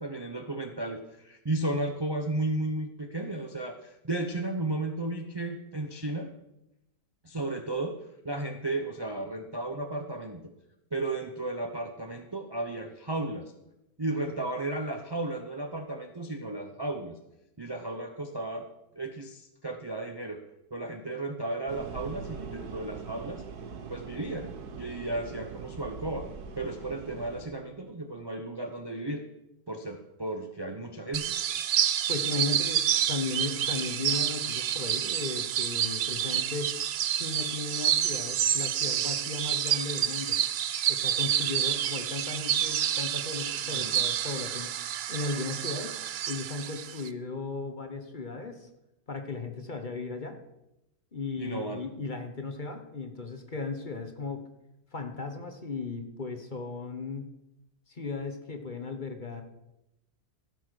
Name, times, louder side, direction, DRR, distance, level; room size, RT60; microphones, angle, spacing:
voice 1, 0.0-6.3 7.2-8.0 8.2-10.5 10.9-13.5 14.0-17.1 17.6-18.7 18.9-20.4 20.7-23.4 23.9-26.3 26.6-29.2 29.7-31.4 43.6-43.9 51.4-51.8, right 2 dB, 25° right, 5 dB, 0.6 m, -34 dB
sound 1, 21.7-27.5, right 5 dB, 85° right, 1.6 m, -42 dB
sound 2, 31.1-47.1, right 10 dB, 65° right, 0.6 m, -29 dB
voice 2, 32.1-36.8 37.1-40.4 40.9-44.7 45.1-45.9 46.3-48.7 49.1-50.4 51.1-54.4 54.9-57.3 57.9-59.4, left 3 dB, 35° left, 6 dB, 1.2 m, -36 dB
15.5 x 6.1 x 6.4 m, 0.87 s
omnidirectional pair, 1.6 m